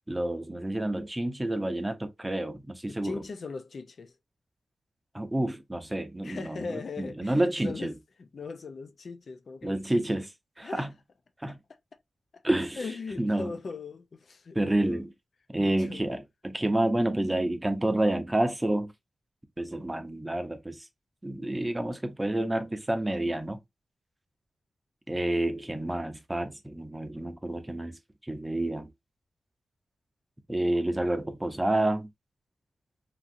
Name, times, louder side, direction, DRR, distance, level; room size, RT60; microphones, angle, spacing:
voice 1, 0.1-3.2 5.1-7.9 9.6-10.3 10.6-10.9 11.4-11.6 12.4-12.8 13.2-13.5 14.5-15.1 15.5-18.9 19.6-20.9 21.2-23.6 25.1-28.9 30.5-32.1, right 1 dB, 20° right, 0.6 m, -29 dB
voice 2, 2.9-4.1 6.2-10.1 10.6-10.9 12.3-12.4 12.8-15.1 15.5-16.0, left 4 dB, 70° left, 0.4 m, -40 dB
2.9 x 2.6 x 2.5 m
cardioid pair, 55°, 0 cm